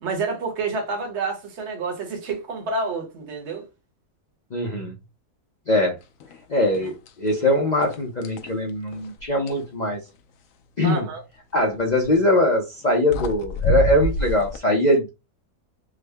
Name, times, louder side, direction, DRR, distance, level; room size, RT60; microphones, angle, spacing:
voice 1, 0.0-3.6 10.8-11.2, right 4 dB, 50° right, 1.3 m, -28 dB
voice 2, 4.5-4.9 5.7-6.0 6.5-10.0 10.8-11.1 11.5-15.1, left 1 dB, 55° left, 0.5 m, -21 dB
sound 1, 6.2-6.4 6.7-7.4 7.8-9.7 11.9-12.2 12.8-12.9 13.1-14.6, left 1 dB, 70° left, 0.9 m, -27 dB
3.7 x 2.1 x 3.3 m
omnidirectional pair, 1.6 m